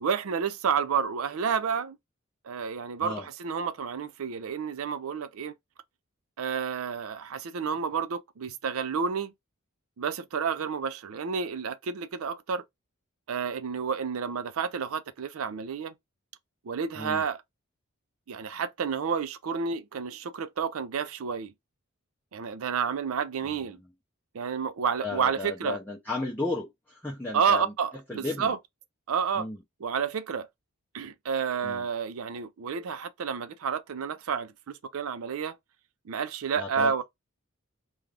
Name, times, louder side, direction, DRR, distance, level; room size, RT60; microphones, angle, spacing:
voice 1, 0.0-2.0 2.4-5.5 6.4-9.3 10.0-12.6 13.3-15.9 16.6-17.4 18.3-21.5 22.3-23.8 24.3-25.8 27.3-28.6 29.1-29.5 29.8-30.5 30.9-35.6 36.1-37.0, right 6 dB, 80° right, 0.4 m, -30 dB
voice 2, 25.0-27.7 28.1-28.6 29.4-29.6 31.6-31.8 36.6-36.9, left 2 dB, 10° left, 0.5 m, -34 dB
2.4 x 2.3 x 3.2 m
head